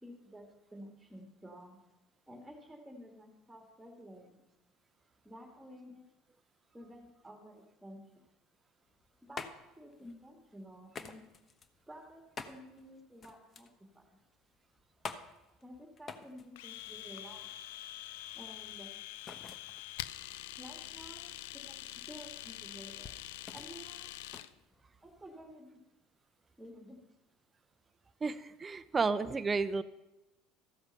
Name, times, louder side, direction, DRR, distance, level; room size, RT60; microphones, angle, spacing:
voice 1, 0.0-1.8 2.3-4.4 5.2-6.1 6.7-8.0 9.2-9.5 9.8-11.2 11.9-13.7 13.9-14.0 15.6-17.5 18.3-18.9 20.6-21.8 22.1-23.1 23.5-24.1 25.0-25.8 26.6-27.0, equal, 5° right, 1 dB, 2.2 m, -52 dB
sound 1, 8.8-25.4, left 5 dB, 35° left, 1.0 m, -50 dB
Domestic sounds home sounds, 16.6-24.5, left 15 dB, 80° left, 0.4 m, -45 dB
voice 2, 28.2-29.8, right 4 dB, 25° right, 13 dB, 0.7 m, -32 dB
13.5 x 7.9 x 5.5 m, 0.97 s
supercardioid pair, 85°, 0 cm